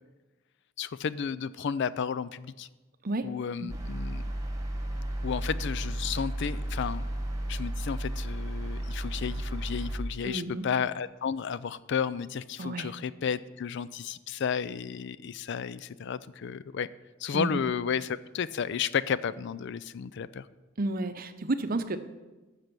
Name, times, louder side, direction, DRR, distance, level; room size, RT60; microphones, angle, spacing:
voice 1, 0.8-2.7 3.2-4.2 5.2-7.1 7.5-16.9 17.2-20.5, left 7 dB, 60° left, 17 dB, 0.4 m, -32 dB
sound 1, 3.7-10.0, right 1 dB, 15° right, 1.6 m, -33 dB
voice 2, 10.2-10.7 12.6-12.9 17.3-17.6 20.8-22.0, right 2 dB, 45° right, 9 dB, 0.7 m, -31 dB
13.0 x 6.7 x 6.1 m, 1.2 s
head